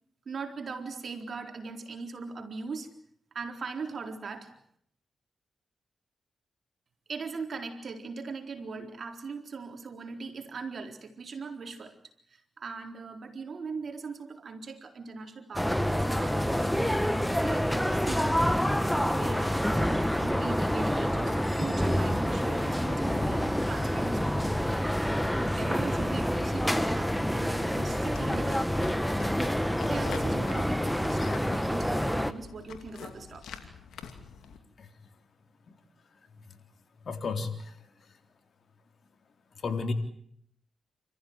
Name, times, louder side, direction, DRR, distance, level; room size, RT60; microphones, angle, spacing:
voice 1, 0.3-2.9 3.3-4.5 7.1-12.0 12.3-25.3 25.5-29.2 29.8-33.8, right 4 dB, 65° right, 5 dB, 4.0 m, -40 dB
sound 1, 15.6-32.3, equal, 5° left, 1.9 m, -27 dB
sound 2, 28.0-34.6, left 7 dB, 85° left, 2.6 m, -45 dB
voice 2, 37.1-37.8 39.6-39.9, left 4 dB, 65° left, 6 dB, 3.7 m, -32 dB
29.0 x 15.0 x 9.5 m, 0.68 s
supercardioid pair, 50°, 0 cm